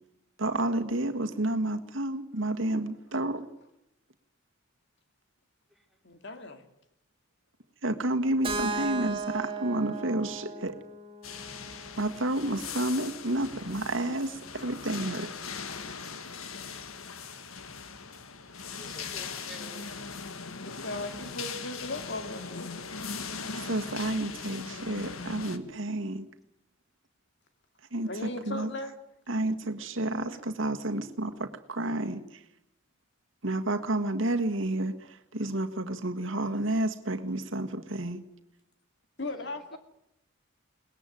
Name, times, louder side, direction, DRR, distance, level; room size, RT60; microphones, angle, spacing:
voice 1, 0.4-3.5 7.8-10.8 12.0-15.3 23.5-26.3 27.9-28.7 29.3-32.4 33.4-38.2, right 1 dB, 65° right, 5 dB, 1.7 m, -30 dB
voice 2, 6.0-6.6 20.6-22.7 28.0-28.9 39.2-39.8, left 2 dB, 55° left, 8 dB, 2.3 m, -37 dB
Keyboard (musical), 8.4-12.3, right 3 dB, 25° right, 3.1 m, -36 dB
sound 1, 11.2-25.6, left 5 dB, 85° left, 1.7 m, -40 dB
voice 3, 18.8-19.9 39.2-39.3 39.7-39.8, right 1 dB, ahead, 0 dB, 2.9 m, -49 dB
22.0 x 19.5 x 9.3 m, 0.82 s
head